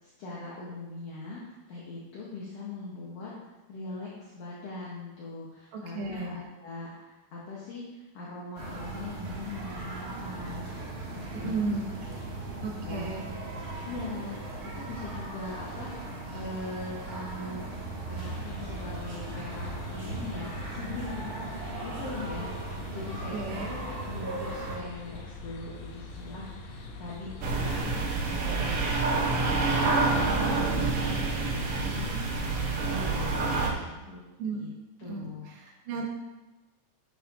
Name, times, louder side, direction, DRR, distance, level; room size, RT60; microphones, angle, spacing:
voice 1, 0.0-3.3 3.7-10.6 11.1-11.6 12.0-13.1 13.8-17.7 18.1-29.0 29.2-34.2 34.5-34.7 35.0-35.5, left 2 dB, 60° left, -6 dB, 2.1 m, -41 dB
voice 2, 5.7-6.4 11.3-11.9 12.6-13.3 23.3-23.7 34.4-34.6 35.0-35.3 35.5-36.1, right 4 dB, 90° right, 0 dB, 2.9 m, -34 dB
sound 1, 8.6-24.8, right 2 dB, 45° right, 1.3 m, -38 dB
sound 2, 18.2-32.8, left 3 dB, 80° left, 1.1 m, -43 dB
sound 3, 27.4-33.7, right 3 dB, 60° right, 1.8 m, -27 dB
9.9 x 7.5 x 2.8 m, 1.1 s
omnidirectional pair, 3.6 m